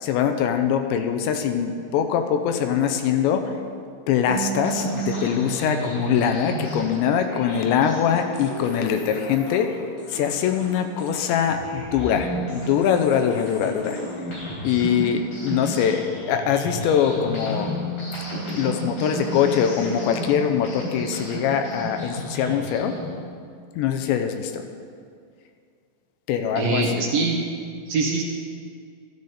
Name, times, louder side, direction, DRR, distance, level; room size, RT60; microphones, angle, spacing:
voice 1, 0.0-3.5 4.1-9.8 10.1-14.0 14.6-17.7 18.5-23.0 23.8-24.6 26.3-27.0, left 8 dB, 80° left, 6 dB, 2.8 m, -23 dB
sound 1, 4.3-23.1, right 1 dB, 50° left, 5.6 m, -33 dB
voice 2, 26.6-27.5 27.9-28.2, right 3 dB, 75° right, -1 dB, 2.1 m, -23 dB
13.0 x 13.0 x 4.1 m, 2.2 s
omnidirectional pair, 5.4 m